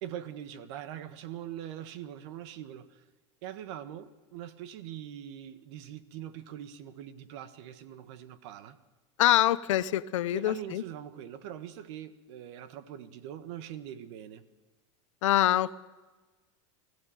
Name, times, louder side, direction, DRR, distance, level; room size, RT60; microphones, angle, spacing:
voice 1, 0.0-3.0 3.4-8.8 10.3-14.4, right 10 dB, 65° right, 1.5 m, -42 dB
voice 2, 9.2-10.8 15.2-15.8, left 14 dB, 90° left, 0.8 m, -25 dB
20.0 x 15.0 x 9.1 m
supercardioid pair, 135°, 16 cm